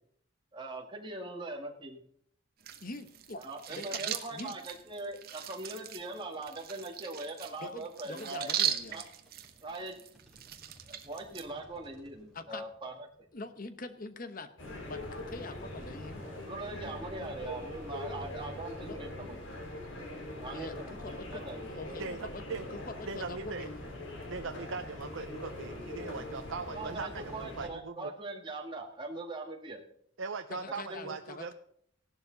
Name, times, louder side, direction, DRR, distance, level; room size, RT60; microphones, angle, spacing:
voice 1, 0.5-2.0 3.4-8.5 8.9-9.0 9.6-10.0 10.9-13.1 16.4-19.6 20.4-21.6 26.7-29.8 30.9-31.2, right 2 dB, 25° right, 2 dB, 2.0 m, -41 dB
sound 1, 2.6-11.4, right 9 dB, 50° right, 1.2 m, -39 dB
voice 2, 2.8-4.6 7.6-9.0 12.3-12.6 13.3-14.5 14.8-16.2 18.8-19.0 20.5-22.4 22.9-23.8 30.5-31.5, left 2 dB, 45° left, 11 dB, 1.1 m, -44 dB
sound 2, 8.7-15.2, equal, ahead, 4.2 m, -63 dB
sound 3, 14.6-27.7, left 1 dB, 75° left, 3.4 m, -42 dB
voice 3, 22.0-22.7 23.1-23.7 24.3-28.1 30.2-31.5, right 4 dB, 85° right, 6 dB, 0.7 m, -40 dB
16.0 x 11.5 x 4.0 m, 0.67 s
head